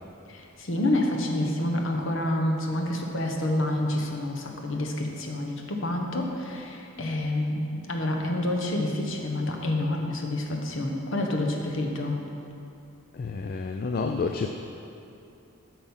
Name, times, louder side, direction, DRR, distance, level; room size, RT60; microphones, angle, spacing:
voice 1, 0.3-12.2, left 1 dB, 60° left, 2 dB, 1.0 m, -28 dB
voice 2, 13.1-14.5, left 4 dB, 45° left, 5 dB, 0.3 m, -29 dB
8.8 x 6.1 x 5.5 m, 2.7 s
head